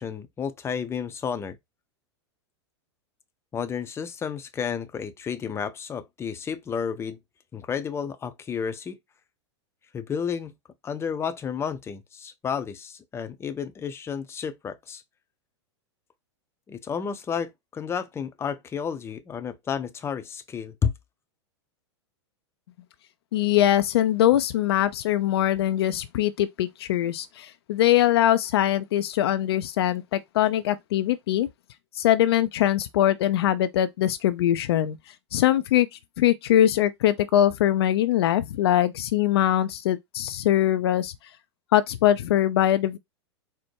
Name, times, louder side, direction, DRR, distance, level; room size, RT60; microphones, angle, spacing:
voice 1, 0.0-1.6 3.5-7.2 7.5-9.0 9.9-10.5 10.8-15.0 16.7-20.9, left 7 dB, 15° left, 0.6 m, -31 dB
voice 2, 23.3-31.5 32.0-35.0 35.3-35.9 36.2-41.1 41.7-43.0, left 12 dB, 60° left, 0.4 m, -22 dB
4.4 x 2.1 x 4.5 m
figure-of-eight pair, 95°, 15 cm